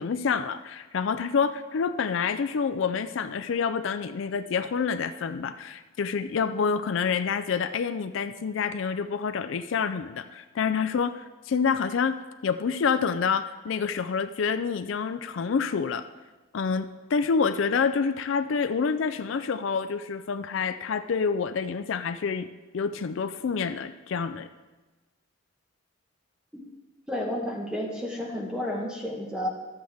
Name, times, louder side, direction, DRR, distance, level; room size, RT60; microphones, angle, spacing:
voice 1, 0.0-16.0 16.5-22.5 22.7-24.5, left 5 dB, 70° left, 11 dB, 0.4 m, -27 dB
voice 2, 27.1-29.5, left 1 dB, 5° right, -1 dB, 1.3 m, -31 dB
12.5 x 7.7 x 3.5 m, 1.2 s
head